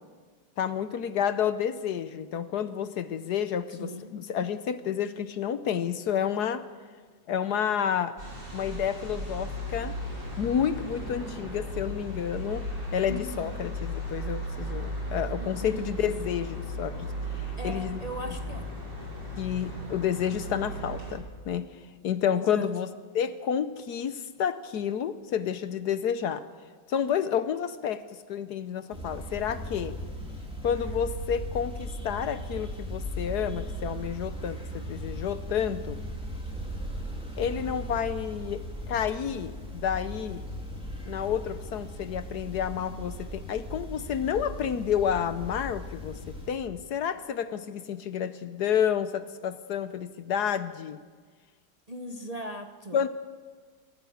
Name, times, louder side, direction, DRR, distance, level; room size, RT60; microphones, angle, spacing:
voice 1, 0.6-6.6 7.3-8.2 8.5-10.0 10.4-17.1 17.4-18.0 19.4-21.7 22.0-22.9 23.1-26.4 26.9-30.0 30.6-36.0 37.4-40.4 41.0-51.0 52.9-53.1, left 8 dB, 65° left, 12 dB, 1.2 m, -30 dB
voice 2, 3.8-4.1 13.1-13.5 15.4-15.8 17.6-18.7 22.3-22.7 51.9-53.1, equal, 30° right, 5 dB, 0.8 m, -39 dB
sound 1, 8.2-21.1, equal, 70° right, 6.5 m, -36 dB
sound 2, 28.9-46.5, equal, 5° right, 3.2 m, -38 dB
25.5 x 14.0 x 7.2 m, 1.6 s
omnidirectional pair, 2.0 m